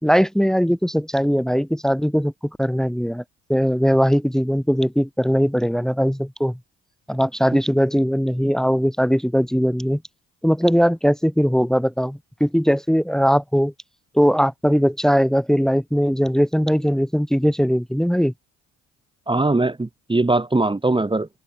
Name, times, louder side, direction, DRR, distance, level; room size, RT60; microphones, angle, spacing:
voice 1, 0.0-2.3 2.6-3.2 3.5-6.6 7.1-10.0 10.4-13.7 14.1-18.3, equal, ahead, 2.6 m, -20 dB
voice 2, 19.3-21.3, right 2 dB, 15° right, 2.4 m, -21 dB
hypercardioid pair, 55°, 36 cm